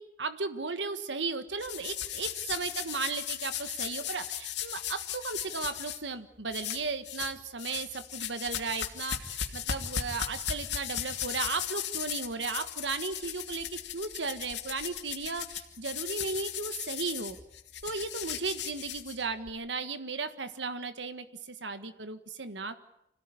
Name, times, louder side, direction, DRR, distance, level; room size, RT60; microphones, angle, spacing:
voice 1, 0.0-17.4 17.8-22.7, right 4 dB, 85° right, 10 dB, 1.6 m, -35 dB
sound 1, 1.6-6.0 6.5-7.3 7.6-19.5, left 9 dB, 75° left, 2.8 m, -37 dB
26.0 x 16.5 x 9.9 m, 0.80 s
head